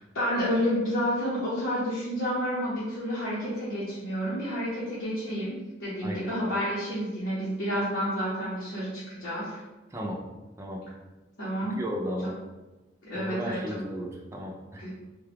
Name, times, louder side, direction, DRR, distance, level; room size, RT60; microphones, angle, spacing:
voice 1, 0.0-9.6 11.4-11.7 13.1-13.8 14.8-14.9, equal, 65° left, -10 dB, 1.0 m, -30 dB
voice 2, 11.7-12.3 13.1-14.9, equal, 15° right, -2 dB, 0.5 m, -34 dB
3.6 x 2.3 x 3.4 m, 1.1 s
head